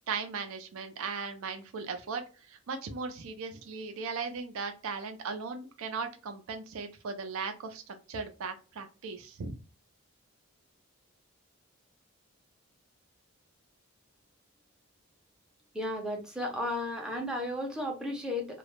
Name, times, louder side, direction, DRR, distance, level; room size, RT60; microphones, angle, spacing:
voice 1, 0.1-2.2 2.5-9.5, right 5 dB, 75° right, 6 dB, 0.4 m, -37 dB
voice 2, 15.7-18.6, left 1 dB, 5° right, 0 dB, 0.5 m, -34 dB
2.2 x 2.0 x 3.0 m, 0.34 s
head